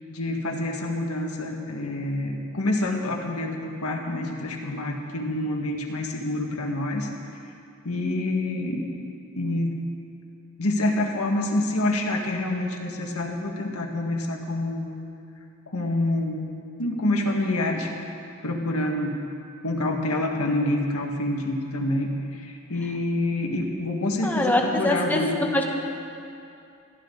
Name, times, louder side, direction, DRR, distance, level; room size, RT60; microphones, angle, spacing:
voice 1, 0.1-7.1 7.8-8.8 9.4-9.9 10.6-14.9 15.7-16.5 16.8-17.9 18.4-19.2 19.6-25.3, left 1 dB, 85° left, 1 dB, 2.0 m, -27 dB
voice 2, 24.2-25.8, left 1 dB, 10° left, 0 dB, 1.6 m, -24 dB
22.5 x 14.5 x 4.1 m, 2.5 s
head